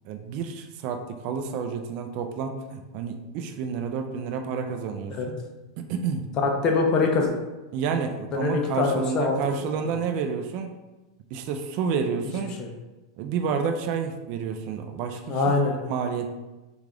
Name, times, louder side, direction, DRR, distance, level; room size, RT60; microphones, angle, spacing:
voice 1, 0.0-5.4 5.8-6.3 7.7-10.7 11.3-12.6 13.2-15.4 15.8-16.3, right 6 dB, 40° right, 5 dB, 0.3 m, -30 dB
voice 2, 6.4-7.3 8.3-9.4 12.6-12.7 15.3-15.7, left 4 dB, 25° left, 1 dB, 0.6 m, -23 dB
3.2 x 2.4 x 3.7 m, 1.1 s
supercardioid pair, 155°, 3 cm